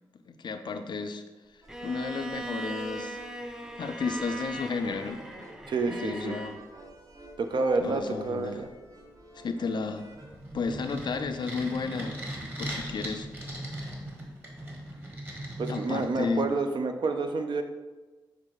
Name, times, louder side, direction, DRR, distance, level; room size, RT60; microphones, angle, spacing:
voice 1, 0.3-1.2 1.8-3.2 3.8-5.2 5.9-6.6 7.8-8.6 9.4-10.1 10.5-13.3 15.7-16.5, left 4 dB, 55° left, 8 dB, 0.4 m, -33 dB
sound 1, 1.6-11.2, right 1 dB, 40° right, 0.9 m, -51 dB
Bowed string instrument, 1.7-6.6, right 2 dB, 5° right, 0.5 m, -40 dB
voice 2, 5.7-6.4 7.4-8.7 15.6-17.6, right 3 dB, 60° right, 6 dB, 0.5 m, -29 dB
sound 2, 10.2-16.5, right 1 dB, 20° right, 1.3 m, -39 dB
6.2 x 2.5 x 3.0 m, 1.2 s
supercardioid pair, 40°, 9 cm